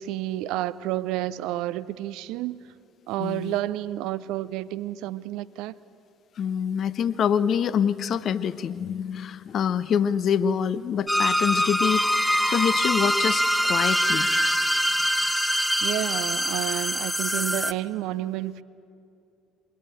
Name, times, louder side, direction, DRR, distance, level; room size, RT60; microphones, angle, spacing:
voice 1, 0.0-2.6 3.1-5.8 15.8-18.6, right 14 dB, 60° right, 0.5 m, -30 dB
voice 2, 3.2-3.5 6.4-12.1 12.5-13.4 13.7-14.3, left 8 dB, 45° left, 0.7 m, -25 dB
sound 1, 11.1-17.7, equal, ahead, 0.9 m, -24 dB
23.5 x 19.0 x 9.1 m
figure-of-eight pair, 55°, 0 cm